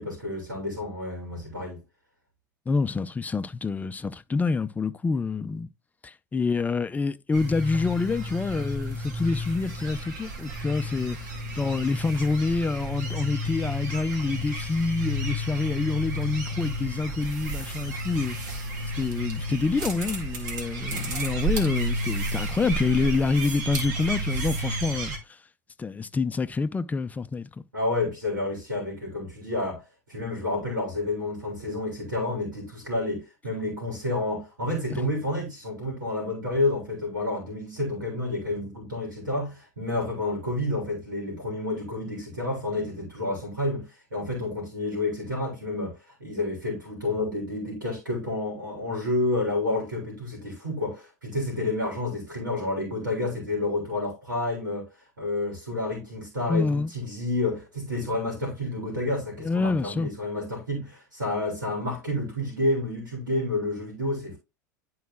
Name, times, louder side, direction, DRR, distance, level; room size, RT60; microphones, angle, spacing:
voice 1, 0.0-1.8 27.7-29.8 30.1-46.0 46.2-54.9 55.2-64.4, left 2 dB, 85° right, 3.5 m, -29 dB
voice 2, 2.7-5.7 6.0-18.4 18.9-25.4 25.8-27.5 34.9-35.0 56.5-56.9 59.4-60.1, left 4 dB, 15° left, 0.5 m, -27 dB
sound 1, 7.3-25.2, right 1 dB, 65° right, 2.0 m, -32 dB
11.0 x 4.7 x 2.2 m
figure-of-eight pair, 80°, 10 cm